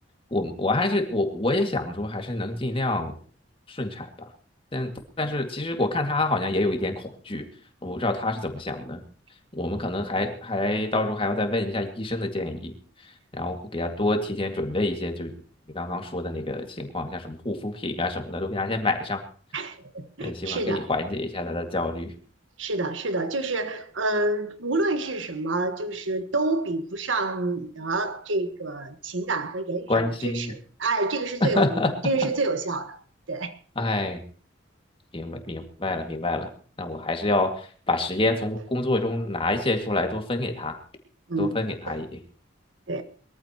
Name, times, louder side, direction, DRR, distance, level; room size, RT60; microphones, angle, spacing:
voice 1, 0.3-3.1 3.7-4.3 4.7-4.9 5.2-7.4 7.8-9.0 9.6-12.7 13.3-15.3 15.7-19.2 20.2-22.1 29.9-30.5 31.4-31.9 33.8-34.2 35.1-36.5 36.8-40.8 41.4-42.2, left 2 dB, 30° left, 2.2 m, -27 dB
voice 2, 19.5-20.9 22.6-33.0 33.3-33.6 41.3-41.6 41.9-42.0 42.9-43.0, right 2 dB, 85° right, 1.5 m, -28 dB
22.5 x 14.5 x 3.0 m
head